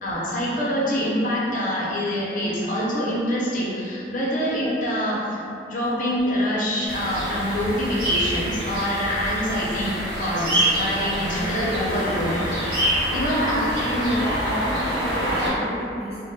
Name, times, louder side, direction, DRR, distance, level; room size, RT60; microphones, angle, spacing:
voice 1, 0.0-12.4 12.7-13.6 13.9-14.1, equal, 45° left, -6 dB, 0.5 m, -25 dB
sound 1, 6.9-15.5, equal, 70° right, 0.9 m, -26 dB
voice 2, 13.2-16.2, equal, 15° right, -12 dB, 0.5 m, -29 dB
2.1 x 2.1 x 3.1 m, 2.6 s
head